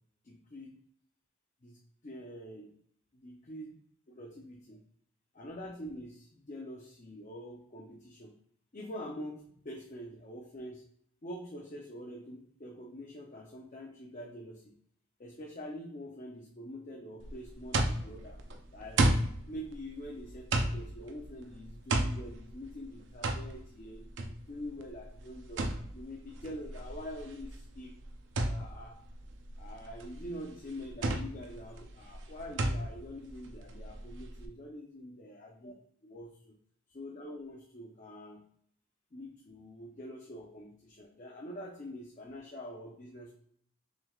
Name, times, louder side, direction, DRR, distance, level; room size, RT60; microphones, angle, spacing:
voice 1, 0.2-0.8 1.6-1.8 2.0-2.7 3.1-3.8 4.1-4.8 5.3-8.3 8.7-10.8 11.2-14.7 15.2-18.4 18.7-19.1 19.5-25.6 25.9-28.0 28.4-29.0 29.6-35.7 36.0-36.5 36.9-38.4 39.1-43.3, equal, 40° left, -1 dB, 0.6 m, -45 dB
sound 1, 17.2-34.5, right 2 dB, 70° right, 0.5 m, -34 dB
6.1 x 3.3 x 2.3 m, 0.64 s
head